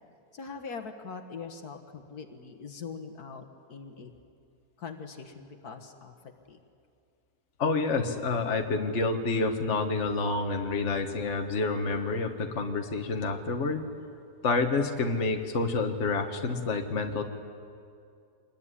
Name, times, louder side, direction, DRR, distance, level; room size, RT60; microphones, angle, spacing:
voice 1, 0.3-4.1 4.8-6.2 6.5-6.6, left 5 dB, 70° left, 6 dB, 2.0 m, -42 dB
voice 2, 7.6-13.9 14.4-17.2, left 3 dB, 45° left, 4 dB, 1.8 m, -28 dB
26.0 x 21.5 x 9.9 m, 2.4 s
omnidirectional pair, 1.7 m